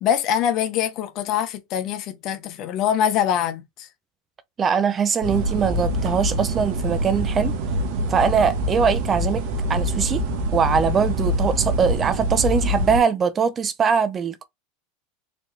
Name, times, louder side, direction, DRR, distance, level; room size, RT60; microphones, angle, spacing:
voice 1, 0.0-3.9, left 9 dB, 45° left, 1.0 m, -24 dB
voice 2, 4.6-7.5 8.1-9.4 9.7-10.2 10.5-14.4, right 6 dB, 25° right, 0.5 m, -21 dB
sound 1, 5.2-13.0, right 1 dB, 65° right, 1.2 m, -25 dB
4.2 x 3.0 x 3.2 m
supercardioid pair, 130°, 0 cm